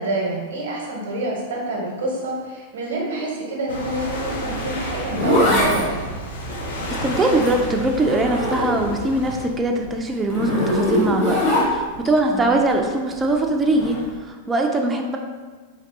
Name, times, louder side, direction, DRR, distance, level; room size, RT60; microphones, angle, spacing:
voice 1, 0.0-6.1 12.3-12.5, right 2 dB, 80° right, -2 dB, 0.8 m, -27 dB
sound 1, 3.7-9.5, equal, 80° left, 0.5 m, -31 dB
Zipper (clothing), 4.6-9.1 9.4-12.1 13.7-14.0, left 1 dB, 55° left, 1.5 m, -23 dB
voice 2, 6.9-15.2, right 2 dB, 15° right, 2 dB, 0.3 m, -22 dB
3.5 x 2.3 x 2.6 m, 1.4 s
hypercardioid pair, 110°, 0 cm